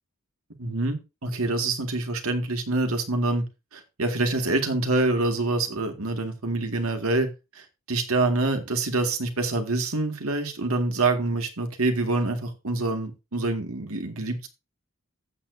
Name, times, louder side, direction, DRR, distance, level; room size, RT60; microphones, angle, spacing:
voice 1, 0.6-3.4 3.7-14.5, right 2 dB, 90° right, 1.9 m, -26 dB
14.5 x 6.9 x 2.7 m
head